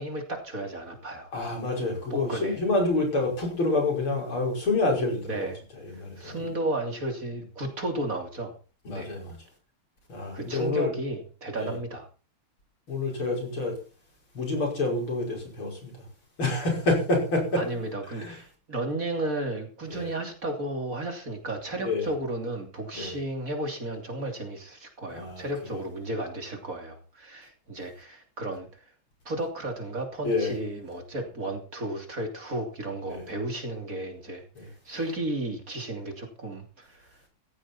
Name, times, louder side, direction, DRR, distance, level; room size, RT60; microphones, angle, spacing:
voice 1, 0.0-1.3 2.1-2.6 5.3-5.6 6.2-8.5 8.9-9.1 10.3-12.1 17.5-28.8 29.3-34.4 34.9-37.1, right 1 dB, 40° right, 4 dB, 3.4 m, -33 dB
voice 2, 1.3-5.5 5.8-6.5 8.9-9.4 10.1-10.9 11.6-11.8 12.9-13.8 14.3-15.9 16.4-17.6 18.2-18.4 19.9-20.1 21.8-22.1 22.9-23.2 25.1-25.4 25.7-25.8 30.2-30.5 33.1-33.2 34.6-34.7, left 2 dB, 75° left, 1 dB, 6.4 m, -28 dB
15.5 x 14.0 x 4.4 m, 0.36 s
omnidirectional pair, 2.3 m